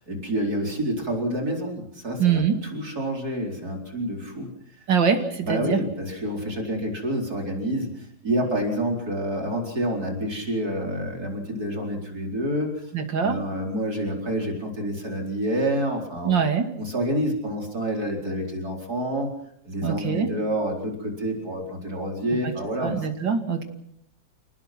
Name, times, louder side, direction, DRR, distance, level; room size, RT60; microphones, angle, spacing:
voice 1, 0.0-4.5 5.4-12.9 13.2-16.4 16.8-19.3 19.6-23.1, equal, 45° right, 1 dB, 4.9 m, -28 dB
voice 2, 2.2-2.6 4.9-5.8 12.9-13.4 16.2-16.7 19.8-20.3 22.4-22.5 22.8-23.6, right 7 dB, 65° right, 6 dB, 3.1 m, -23 dB
29.5 x 19.0 x 6.0 m, 0.72 s
omnidirectional pair, 2.2 m